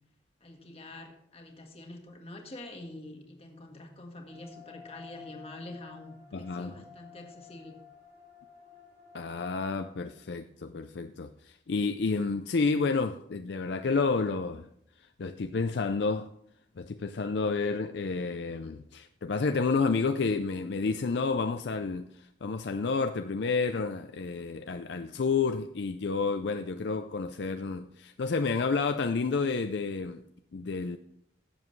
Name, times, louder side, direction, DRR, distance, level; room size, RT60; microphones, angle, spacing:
voice 1, 0.4-7.8, left 1 dB, 30° left, 1.6 m, -46 dB
sound 1, 4.3-10.0, left 7 dB, 50° right, 3.2 m, -53 dB
voice 2, 6.3-6.7 9.1-14.7 15.0-16.3 16.8-30.2 30.5-31.0, left 4 dB, 60° left, 0.5 m, -30 dB
16.5 x 7.3 x 3.2 m
head